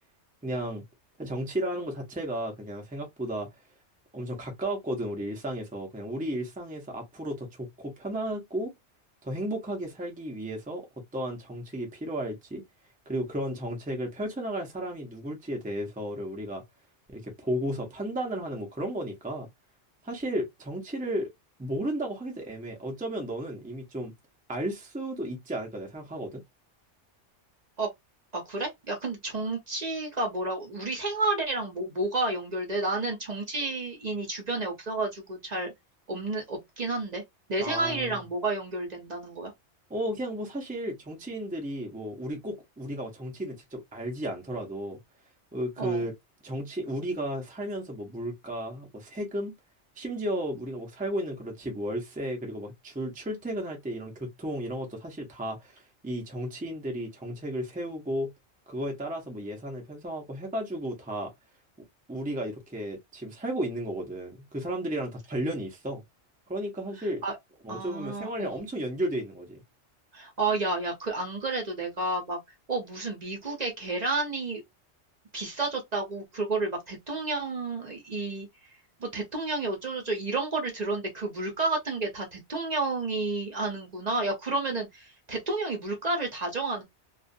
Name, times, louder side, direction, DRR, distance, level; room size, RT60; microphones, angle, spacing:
voice 1, 0.4-0.8 1.2-3.5 4.1-8.7 9.2-10.8 11.1-12.6 13.1-16.6 17.1-19.5 20.0-21.3 21.6-24.1 24.5-26.4 37.6-38.2 39.9-45.0 45.5-46.1 46.4-49.5 50.0-58.3 58.7-61.3 62.1-66.0 66.5-67.2 67.6-69.6, right 1 dB, 10° right, 0.5 m, -33 dB
voice 2, 28.3-35.7 36.1-37.2 37.5-39.5 45.8-46.0 67.2-67.3 67.7-68.6 70.1-72.4 72.7-74.6 75.3-78.5 79.0-86.8, right 2 dB, 45° right, 0.8 m, -31 dB
2.4 x 2.3 x 2.5 m
omnidirectional pair, 1.2 m